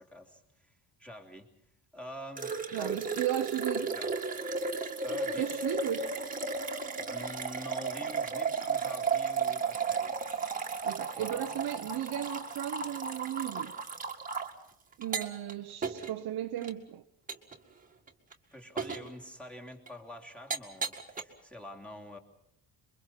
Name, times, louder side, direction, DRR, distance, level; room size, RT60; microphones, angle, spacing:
voice 1, 0.0-1.5 1.9-3.0 3.9-4.1 5.0-5.7 7.0-10.2 11.1-11.4 18.5-22.2, left 1 dB, 5° left, 3.0 m, -46 dB
sound 1, 2.4-14.5 15.0-15.5 15.8-16.1 16.6-16.7 17.3-17.6 18.1-18.3 18.8-19.1 19.9-20.0 20.5-21.2, right 4 dB, 20° right, 2.0 m, -34 dB
voice 2, 2.7-4.0 5.4-6.1 10.8-13.8 15.0-17.0, right 12 dB, 60° right, 0.9 m, -35 dB
27.5 x 23.5 x 5.8 m
cardioid pair, 165°, 42 cm